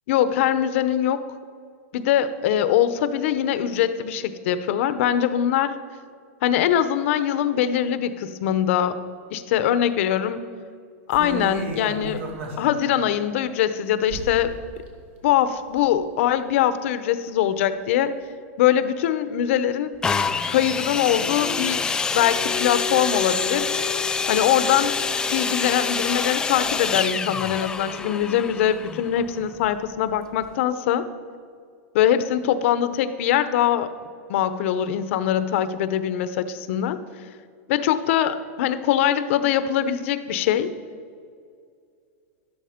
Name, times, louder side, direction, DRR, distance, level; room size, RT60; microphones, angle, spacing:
voice 1, 0.1-1.2 1.9-5.7 6.4-9.0 9.3-10.4 11.1-12.2 12.6-14.5 15.2-18.1 18.6-19.9 20.5-21.8 22.1-23.8 24.3-24.9 25.3-31.0 31.9-33.9 34.3-37.0 37.7-40.7, left 10 dB, 60° left, 12 dB, 0.8 m, -22 dB
sound 1, 11.1-12.7 13.1-13.2 14.1-14.5 14.8-14.9 15.4-16.0 16.4-16.5, right 2 dB, 65° right, 2.4 m, -33 dB
sound 2, 20.0-29.7 30.4-30.5, left 5 dB, 10° left, 0.4 m, -26 dB
12.0 x 12.0 x 5.1 m, 2.2 s
supercardioid pair, 155°, 8 cm